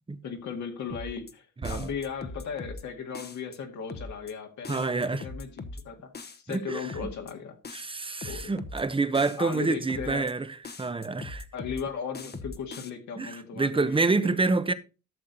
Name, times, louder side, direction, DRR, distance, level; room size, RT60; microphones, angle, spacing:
voice 1, 0.2-6.1 6.4-7.6 8.2-8.5 9.4-10.3 11.5-14.4, left 6 dB, 70° left, 2.0 m, -37 dB
sound 1, 0.9-1.3 1.6-2.8 3.1-3.6 3.9-4.3 4.6-5.8 6.1-6.6 6.9-7.3 7.6-8.8 9.1-9.6 9.9-10.3 10.6-11.8 12.1-12.9, left 3 dB, 35° left, 1.1 m, -40 dB
sound 2, 1.6-3.2, right 4 dB, 40° right, 1.9 m, -42 dB
voice 2, 4.7-5.3 6.5-7.1 7.7-10.5 10.8-11.4 13.2-14.7, right 3 dB, 15° right, 0.9 m, -27 dB
12.5 x 6.5 x 4.1 m
cardioid pair, 90°, 30 cm